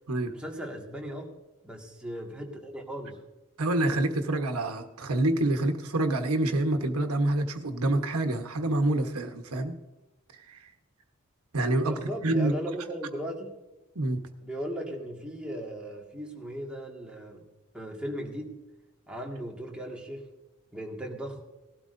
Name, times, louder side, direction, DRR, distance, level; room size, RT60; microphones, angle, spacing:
voice 1, 0.3-1.3 1.6-3.2 11.8-13.5 14.4-17.4 17.7-18.6 19.1-20.3 20.7-21.4, right 1 dB, 5° right, -1 dB, 1.9 m, -37 dB
voice 2, 3.6-9.8 10.5-10.6 11.5-12.5 13.9-14.2, right 1 dB, 80° right, 6 dB, 1.2 m, -27 dB
19.0 x 12.5 x 2.7 m, 1.1 s
head